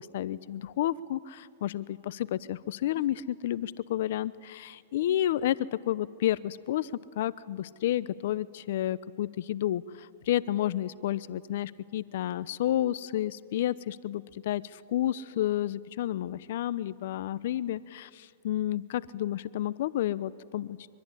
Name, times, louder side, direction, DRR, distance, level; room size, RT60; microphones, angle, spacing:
voice 1, 0.0-6.9 7.2-20.8, left 12 dB, 65° left, 18 dB, 0.8 m, -31 dB
24.5 x 23.5 x 10.0 m, 2.2 s
hypercardioid pair, 130°, 0 cm